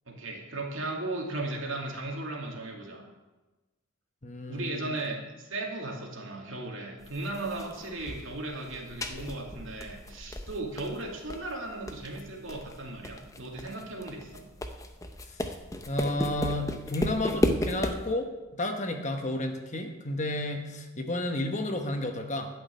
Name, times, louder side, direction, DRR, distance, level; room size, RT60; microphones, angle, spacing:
voice 1, 0.1-3.0 4.5-14.4, right 2 dB, 70° right, 0 dB, 2.5 m, -36 dB
voice 2, 4.2-4.9 15.9-22.5, left 1 dB, 35° left, 5 dB, 1.1 m, -32 dB
sound 1, 7.0-18.1, left 1 dB, 15° left, 0.7 m, -35 dB
11.5 x 6.3 x 8.4 m, 1.1 s
head